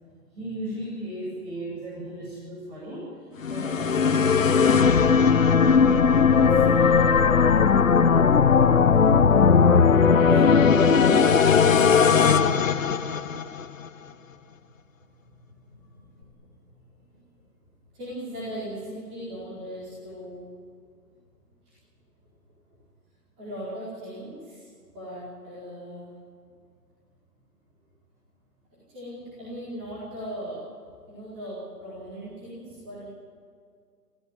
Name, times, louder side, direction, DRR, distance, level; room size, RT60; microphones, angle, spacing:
voice 1, 0.3-3.1 3.5-4.9 10.0-12.1, equal, 40° right, -6 dB, 7.7 m, -35 dB
sound 1, 3.4-13.7, left 6 dB, 50° left, 1.1 m, -18 dB
voice 2, 5.5-7.8 14.0-14.6 15.0-17.4 17.9-20.4 21.6-21.7 23.4-24.7 24.9-26.1 28.9-30.6 31.1-33.1, equal, 10° right, -11 dB, 4.4 m, -39 dB
26.0 x 16.5 x 9.7 m, 2.2 s
hypercardioid pair, 175°, 49 cm